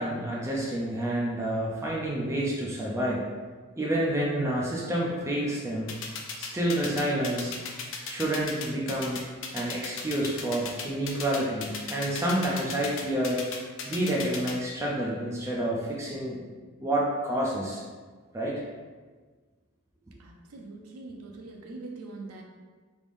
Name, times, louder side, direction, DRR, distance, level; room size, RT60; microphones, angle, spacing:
voice 1, 0.0-3.2 3.8-5.9 6.4-7.5 8.1-9.2 9.5-13.4 13.9-16.4 16.8-17.8 18.3-18.6, right 1 dB, 10° right, -4 dB, 0.4 m, -29 dB
sound 1, 5.9-14.5, left 6 dB, 55° left, 0.4 m, -35 dB
voice 2, 20.2-22.4, right 3 dB, 85° right, 1 dB, 0.6 m, -42 dB
3.4 x 3.4 x 2.5 m, 1.4 s
head